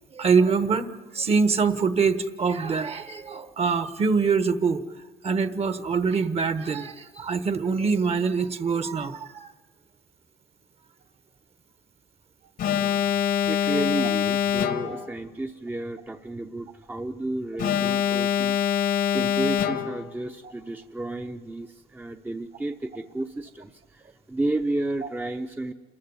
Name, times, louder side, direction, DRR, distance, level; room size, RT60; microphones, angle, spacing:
voice 1, 0.1-0.8 1.1-4.8 5.2-9.5 14.9-15.1, right 5 dB, 35° right, 12 dB, 1.3 m, -24 dB
Alarm, 12.6-15.1 17.6-20.1, left 9 dB, 65° left, 1.4 m, -24 dB
voice 2, 13.4-24.0 24.3-25.7, right 2 dB, 10° right, 5 dB, 0.8 m, -32 dB
28.0 x 14.5 x 9.6 m, 1.3 s
cardioid pair, 110°, 17 cm